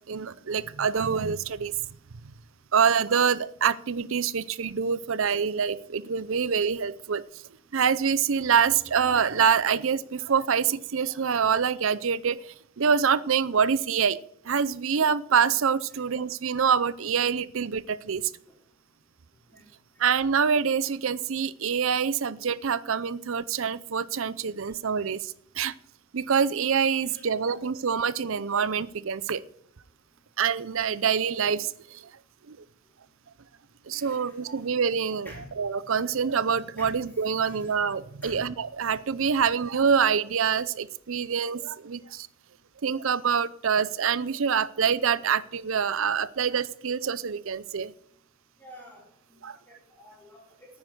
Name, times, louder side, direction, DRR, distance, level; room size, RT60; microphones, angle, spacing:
voice 1, 0.0-1.7 2.2-2.3 2.7-7.2 7.7-14.2 14.4-18.3 20.0-25.7 26.1-29.4 30.4-32.1 32.5-32.6 33.9-35.3 35.6-42.3 42.8-47.9 49.4-49.6, right 6 dB, 65° right, 17 dB, 0.5 m, -26 dB
voice 2, 33.9-34.3 35.2-35.5 36.8-36.9 37.3-37.7 38.2-38.4 48.6-49.0 49.7-50.7, equal, 10° left, -4 dB, 4.0 m, -48 dB
9.7 x 9.4 x 7.8 m, 0.70 s
head